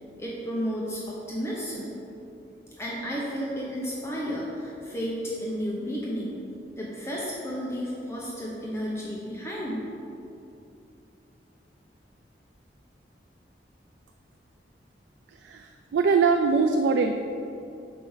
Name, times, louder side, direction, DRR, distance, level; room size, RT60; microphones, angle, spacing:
voice 1, 0.2-2.0 2.8-6.4 6.8-9.8, equal, 15° left, -5 dB, 0.7 m, -32 dB
voice 2, 15.3-17.1, right 4 dB, 85° right, 5 dB, 0.3 m, -23 dB
5.1 x 4.5 x 5.5 m, 2.7 s
head